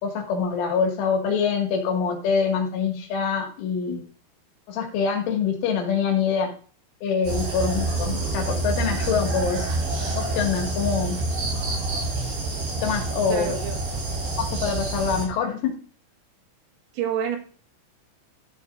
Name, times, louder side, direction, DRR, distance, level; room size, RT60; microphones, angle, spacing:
voice 1, 0.0-4.0 4.7-6.5 7.0-9.7 10.2-11.2 12.8-13.5 14.6-15.8, left 6 dB, 70° left, 1 dB, 4.5 m, -25 dB
sound 1, 7.2-15.3, right 2 dB, 70° right, 8.0 m, -27 dB
voice 2, 13.3-13.8 16.9-17.4, right 7 dB, 85° right, 3 dB, 4.4 m, -27 dB
14.5 x 8.1 x 2.6 m, 0.41 s
omnidirectional pair, 5.9 m